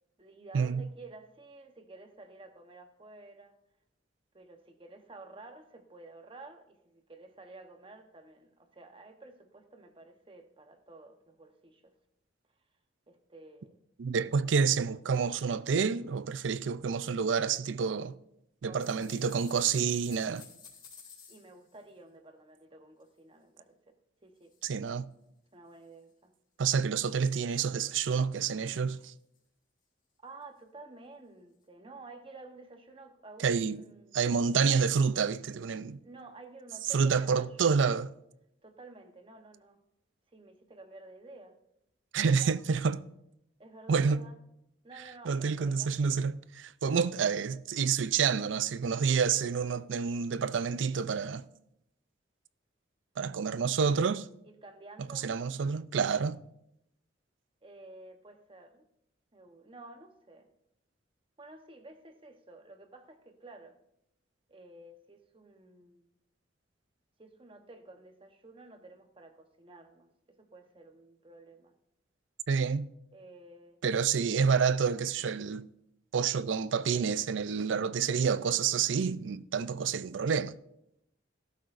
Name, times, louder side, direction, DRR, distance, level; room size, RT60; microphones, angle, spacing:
voice 1, 0.2-3.5 4.3-11.9 13.1-13.8 18.7-19.1 21.3-23.9 24.2-24.5 25.5-26.3 30.2-34.1 36.0-37.8 38.6-39.8 40.3-41.6 42.4-42.6 43.6-44.4 44.8-46.2 54.4-55.3 57.6-58.8 59.3-60.5 61.4-63.8 64.5-66.1 67.2-71.7 73.1-73.8, right 2 dB, 30° right, 1.0 m, -52 dB
voice 2, 14.0-18.1 18.6-20.4 24.6-25.1 26.6-29.1 33.4-33.8 34.1-36.0 36.9-38.1 42.1-43.0 43.9-44.2 45.3-51.4 53.2-54.3 55.1-56.4 72.5-72.9 73.8-75.7 76.1-80.5, right 6 dB, 80° right, 0.5 m, -28 dB
sound 1, 18.8-21.9 23.0-23.1 24.4-24.7 25.1-25.2 25.8-25.9 26.6-26.7 28.7-29.0 29.3-29.4 30.4-30.5, left 6 dB, 25° left, 3.0 m, -54 dB
18.0 x 12.0 x 2.6 m
head